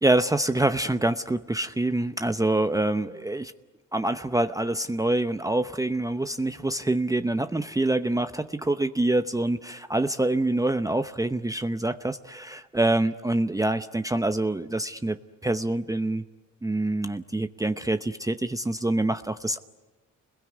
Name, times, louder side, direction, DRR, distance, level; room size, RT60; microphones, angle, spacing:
voice 1, 0.0-3.5 3.9-16.2 16.6-19.6, right 2 dB, 10° right, 10 dB, 0.8 m, -26 dB
28.5 x 21.5 x 9.6 m, 1.3 s
cardioid pair, 90°, 30 cm